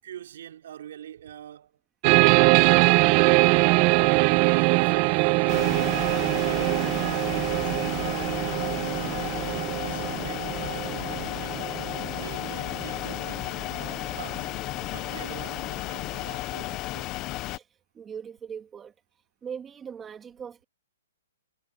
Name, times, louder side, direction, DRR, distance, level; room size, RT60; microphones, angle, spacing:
voice 1, 0.0-1.8 2.1-4.0 4.3-7.8 9.5-14.5 14.9-17.1, right 10 dB, 60° right, 4.9 m, -45 dB
sound 1, 2.0-13.2, right 23 dB, 30° right, 0.9 m, -23 dB
sound 2, 2.6-9.7, right 8 dB, 80° right, 5.6 m, -46 dB
sound 3, 5.5-17.6, left 18 dB, 25° left, 0.5 m, -33 dB
voice 2, 17.9-18.9 19.4-20.6, right 7 dB, 15° right, 2.3 m, -39 dB
hypercardioid pair, 160°, 0 cm